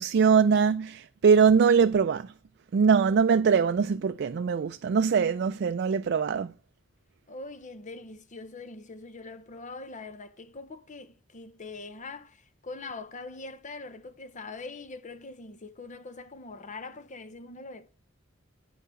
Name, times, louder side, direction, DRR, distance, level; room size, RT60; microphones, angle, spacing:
voice 1, 0.0-2.3 2.7-6.5, right 6 dB, 55° right, 0.4 m, -22 dB
voice 2, 7.3-17.9, left 3 dB, 40° left, 0.8 m, -43 dB
9.2 x 4.9 x 6.3 m
head